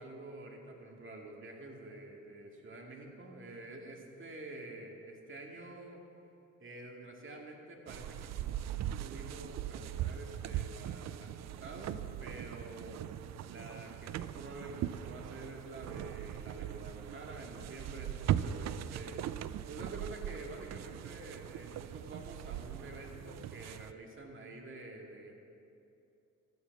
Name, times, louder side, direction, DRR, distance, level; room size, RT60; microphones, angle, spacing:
voice 1, 0.0-6.0 6.6-13.0 13.5-19.2 19.7-25.3, right 2 dB, 40° right, 1 dB, 2.1 m, -48 dB
sound 1, 7.9-23.9, right 11 dB, 60° right, 0.5 m, -40 dB
13.0 x 9.1 x 5.9 m, 2.7 s
cardioid pair, 90°, 30 cm